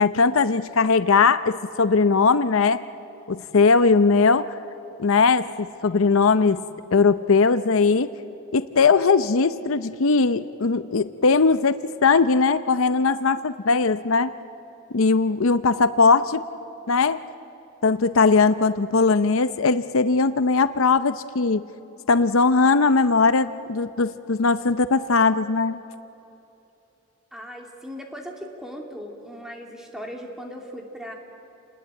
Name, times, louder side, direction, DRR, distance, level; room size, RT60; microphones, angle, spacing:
voice 1, 0.0-2.8 3.3-4.6 5.0-6.6 6.9-8.1 8.5-14.3 14.9-16.4 16.9-17.2 17.8-21.6 22.1-25.8, left 4 dB, 70° left, 13 dB, 0.6 m, -19 dB
voice 2, 27.3-31.1, equal, ahead, 1 dB, 2.7 m, -38 dB
28.5 x 20.0 x 9.0 m, 2.8 s
head